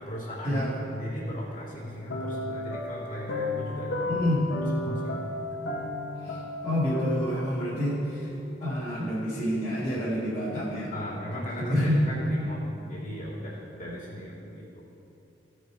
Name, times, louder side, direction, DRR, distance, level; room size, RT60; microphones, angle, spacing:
voice 1, 0.0-4.1 4.7-5.4 10.9-12.6 12.9-14.8, equal, 45° left, -6 dB, 2.6 m, -37 dB
sound 1, 2.1-8.5, left 2 dB, 85° left, 1.2 m, -34 dB
voice 2, 4.1-4.4 6.2-8.3 8.6-10.9 11.6-12.0, equal, 25° left, -11 dB, 2.1 m, -28 dB
15.5 x 5.4 x 4.7 m, 2.7 s
head